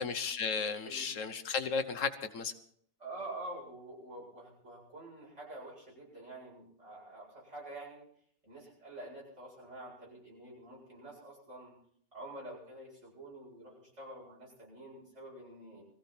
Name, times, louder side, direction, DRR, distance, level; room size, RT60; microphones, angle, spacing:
voice 1, 0.0-2.5, left 5 dB, 70° left, 9 dB, 1.4 m, -34 dB
voice 2, 3.0-8.1 8.4-11.7 12.1-15.8, right 1 dB, 60° right, -4 dB, 8.4 m, -47 dB
21.5 x 15.5 x 4.3 m, 0.63 s
omnidirectional pair, 1.4 m